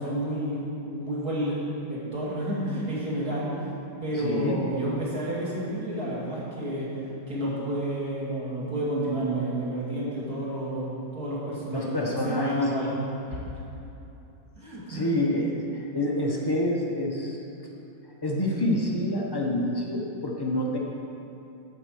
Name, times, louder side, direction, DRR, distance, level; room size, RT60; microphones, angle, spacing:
voice 1, 0.0-3.5 4.0-11.9 12.2-12.9 13.3-13.4 14.6-15.0, right 1 dB, 50° right, -7 dB, 2.9 m, -30 dB
voice 2, 4.1-4.6 11.7-12.5 14.9-17.4 18.2-20.8, left 1 dB, 25° left, -2 dB, 0.5 m, -27 dB
11.0 x 4.7 x 7.7 m, 2.9 s
omnidirectional pair, 2.1 m